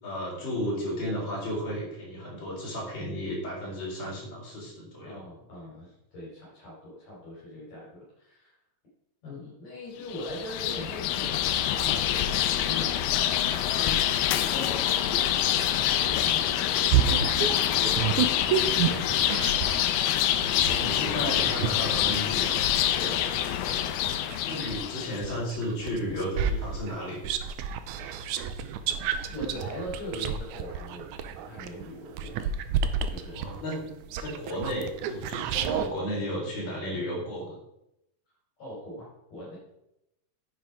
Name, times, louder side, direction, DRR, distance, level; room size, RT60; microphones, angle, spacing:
voice 1, 0.0-5.2 20.6-22.7 24.4-27.2 33.3-33.9 34.2-37.5, equal, 30° left, -5 dB, 4.7 m, -33 dB
voice 2, 5.0-8.5 9.2-12.2 12.6-13.4 13.7-14.0 14.3-19.7 22.9-23.5 29.3-31.1 31.4-32.4 33.1-33.4 38.6-39.6, left 1 dB, 50° left, -6 dB, 4.4 m, -41 dB
sound 1, 10.1-25.2, left 11 dB, 85° left, 2.5 m, -26 dB
sound 2, 16.9-19.8 20.4-24.7 25.2-35.9, right 8 dB, 80° right, 1.8 m, -30 dB
9.6 x 7.6 x 4.8 m, 0.84 s
omnidirectional pair, 4.1 m